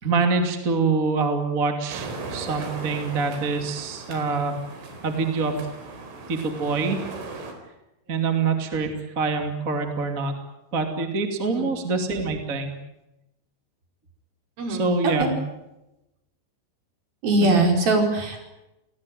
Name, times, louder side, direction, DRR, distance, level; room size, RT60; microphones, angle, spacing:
voice 1, 0.0-4.6 5.0-5.6 6.3-7.0 8.1-10.3 10.7-12.7 14.7-15.3 17.4-17.7, right 4 dB, 25° right, 5 dB, 2.0 m, -25 dB
sound 1, 1.9-7.5, right 3 dB, 80° right, 6.9 m, -37 dB
voice 2, 11.5-11.8 14.6-15.3 17.2-18.4, right 2 dB, 50° right, 3 dB, 6.5 m, -22 dB
29.5 x 19.0 x 9.3 m, 0.94 s
omnidirectional pair, 5.6 m